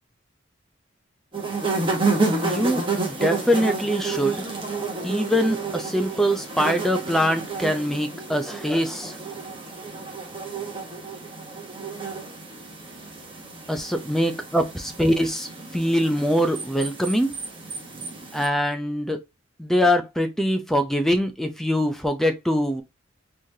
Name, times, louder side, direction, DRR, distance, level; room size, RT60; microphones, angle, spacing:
sound 1, 1.3-18.5, right 3 dB, 25° right, 1.1 m, -30 dB
voice 1, 2.4-4.4 5.0-9.2 13.7-17.3 18.3-19.2 19.6-22.8, equal, ahead, 0.5 m, -23 dB
4.1 x 3.2 x 2.7 m
head